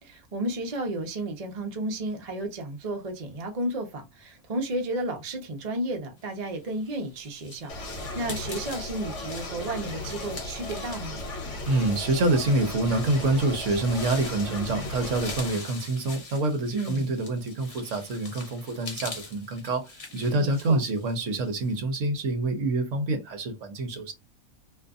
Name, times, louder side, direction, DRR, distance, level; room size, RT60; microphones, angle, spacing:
voice 1, 0.0-11.2 16.7-17.1 20.4-20.8, right 1 dB, 40° right, 0.5 m, -33 dB
sound 1, 6.6-21.8, left 3 dB, 40° left, 0.5 m, -43 dB
sound 2, 7.7-15.5, left 2 dB, 60° left, 1.1 m, -36 dB
voice 2, 11.7-24.1, right 2 dB, 65° right, 0.9 m, -26 dB
2.6 x 2.5 x 2.3 m
omnidirectional pair, 1.5 m